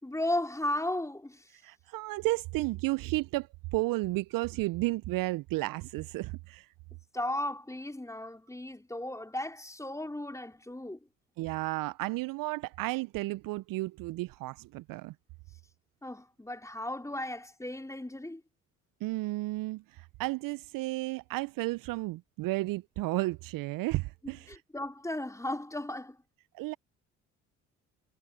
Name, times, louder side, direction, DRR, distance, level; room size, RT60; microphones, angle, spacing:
voice 1, 0.0-1.5 7.1-11.0 16.0-18.4 24.2-26.2, left 1 dB, 10° left, 4.2 m, -35 dB
voice 2, 1.6-6.7 11.4-15.1 19.0-24.5 26.5-26.7, right 20 dB, 60° right, 0.7 m, -33 dB
hypercardioid pair, 50°, 38 cm